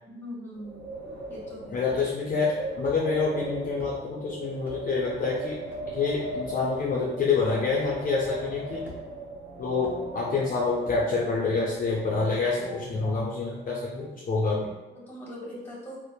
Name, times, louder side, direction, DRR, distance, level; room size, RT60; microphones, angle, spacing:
voice 1, 0.1-1.0 1.3-1.9 14.9-16.0, equal, 10° left, -3 dB, 1.1 m, -41 dB
Wind, 0.5-13.1, right 1 dB, 70° right, 1.0 m, -39 dB
voice 2, 1.7-5.6 5.9-8.9 9.6-14.7, left 4 dB, 45° left, -4 dB, 0.5 m, -27 dB
sound 1, 1.8-2.3 2.8-3.0 3.8-4.0 4.6-4.8 5.7-5.9 6.7-6.8 7.8-8.0 8.8-9.3 9.8-10.0 10.8-11.1, left 2 dB, 10° right, 0.9 m, -46 dB
sound 2, 9.2-14.7, right 2 dB, 30° right, 1.1 m, -47 dB
2.9 x 2.1 x 2.2 m, 1.0 s
cardioid pair, 90°, 20 cm